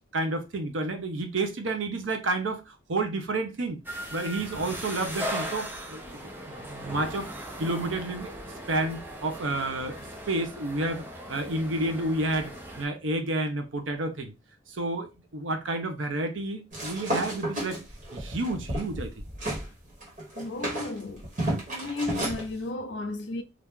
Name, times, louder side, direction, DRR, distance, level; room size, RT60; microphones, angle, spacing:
voice 1, 0.1-3.8 4.1-6.0 6.5-7.3 7.6-8.3 8.7-14.3 14.7-17.8 18.1-19.1, right 2 dB, 85° right, 0.7 m, -30 dB
sound 1, 3.8-12.8, equal, 10° right, 0.5 m, -38 dB
sound 2, 16.7-19.7 20.0-22.4, right 1 dB, 40° right, 1.3 m, -32 dB
voice 2, 20.4-21.3 21.7-23.4, left 2 dB, 70° left, 0.5 m, -34 dB
2.9 x 2.5 x 3.5 m
head